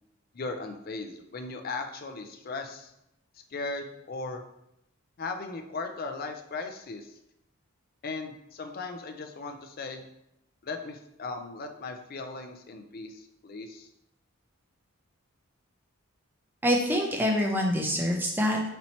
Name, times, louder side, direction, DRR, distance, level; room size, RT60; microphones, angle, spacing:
voice 1, 0.3-2.9 3.5-4.4 5.2-7.1 8.0-10.0 10.6-13.9, left 3 dB, 40° left, 6 dB, 0.4 m, -37 dB
voice 2, 16.6-18.6, equal, 10° right, 0 dB, 0.5 m, -25 dB
4.3 x 2.9 x 4.2 m, 0.82 s
head